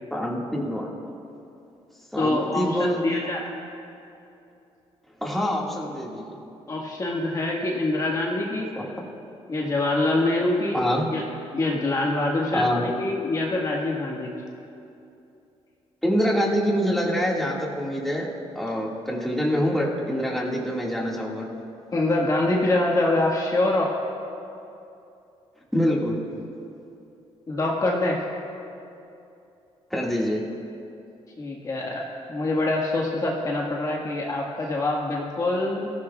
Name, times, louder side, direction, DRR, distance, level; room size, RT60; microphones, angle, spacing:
voice 1, 0.1-0.9 2.1-3.3 5.2-6.4 8.8-8.9 10.7-11.0 12.5-12.9 16.0-18.3 18.6-21.5 25.7-26.2 29.9-30.4, equal, ahead, -4 dB, 1.9 m, -25 dB
voice 2, 2.2-3.4 6.7-8.7 9.5-10.8 11.1-11.2 11.5-14.3 21.9-23.9 27.5-28.2 31.4-35.9, left 2 dB, 30° left, -2 dB, 1.6 m, -25 dB
23.5 x 14.5 x 2.3 m, 2.7 s
cardioid pair, 125°, 11 cm